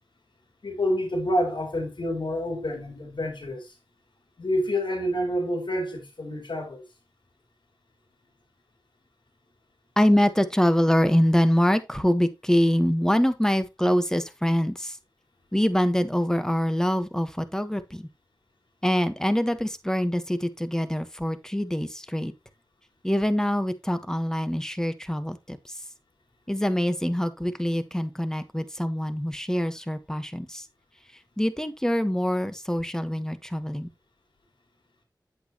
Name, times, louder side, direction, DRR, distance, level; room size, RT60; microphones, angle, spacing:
voice 1, 0.6-3.7 4.4-6.8, equal, 85° left, 3.3 m, -28 dB
voice 2, 10.0-15.0 15.5-18.1 18.8-22.3 23.0-25.8 26.5-30.7 31.4-33.9, equal, 5° left, 1.4 m, -24 dB
8.8 x 8.2 x 3.1 m
wide cardioid pair, 45°, 8 cm